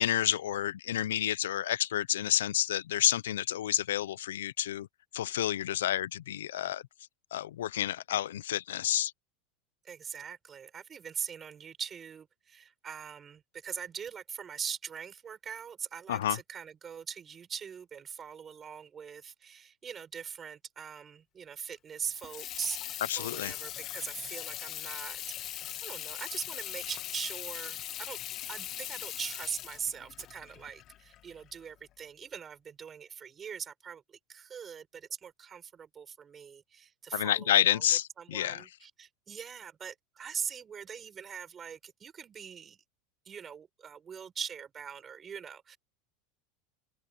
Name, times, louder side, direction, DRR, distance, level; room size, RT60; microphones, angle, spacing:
voice 1, 0.0-4.9 5.1-6.8 7.3-9.1 16.1-16.4 23.1-23.5 37.1-38.6, left 12 dB, 90° left, 0.6 m, -29 dB
voice 2, 9.8-28.2 28.5-42.8 43.2-45.8, right 7 dB, 30° right, 6.2 m, -42 dB
Water tap faucet / Sink (filling or washing), 22.0-31.6, left 13 dB, 45° left, 2.0 m, -40 dB
supercardioid pair, 110°, 0 cm